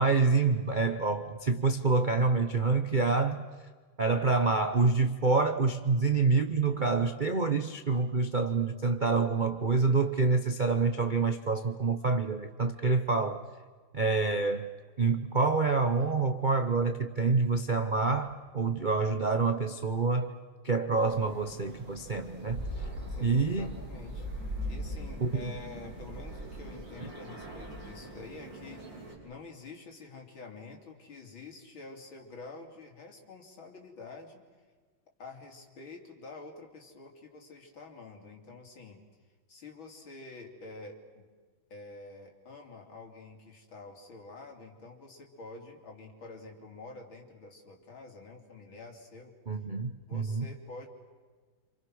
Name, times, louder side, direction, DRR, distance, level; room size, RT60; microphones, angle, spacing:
voice 1, 0.0-3.4 4.0-13.4 13.9-14.7 15.0-20.4 20.6-22.7 23.2-23.8 25.2-25.5 27.0-27.1 49.5-50.5, right 4 dB, 40° right, 0.7 m, -27 dB
sound 1, 20.9-29.1, equal, 60° right, 6.4 m, -41 dB
voice 2, 23.1-24.3 24.7-34.4 35.2-39.0 39.5-41.3 41.7-49.4 50.1-50.9, left 3 dB, 70° left, 3.9 m, -48 dB
28.0 x 27.5 x 6.3 m
omnidirectional pair, 2.2 m